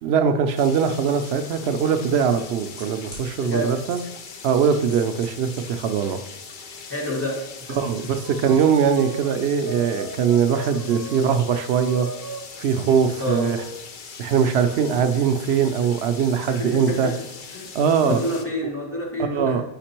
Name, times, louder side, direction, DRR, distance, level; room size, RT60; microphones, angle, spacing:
voice 1, 0.0-4.0 4.4-6.2 7.8-12.1 12.6-13.6 14.2-17.1 17.7-18.2 19.2-19.6, right 7 dB, 85° right, 8 dB, 0.8 m, -21 dB
sound 1, 0.6-18.5, left 5 dB, 55° left, 0.8 m, -41 dB
sound 2, 1.3-1.4 2.3-3.3 3.9-4.3 4.6-5.6 5.9-6.0, left 1 dB, 80° left, 2.1 m, -44 dB
voice 2, 3.4-3.7 6.8-7.8 10.8-11.1 13.2-13.5 16.4-17.1 17.5-19.6, left 1 dB, 10° left, -6 dB, 1.9 m, -29 dB
sound 3, 8.2-11.3 11.9-13.9 14.5-16.4, right 3 dB, 30° right, 0.4 m, -39 dB
5.8 x 5.1 x 4.4 m, 0.88 s
omnidirectional pair, 1.1 m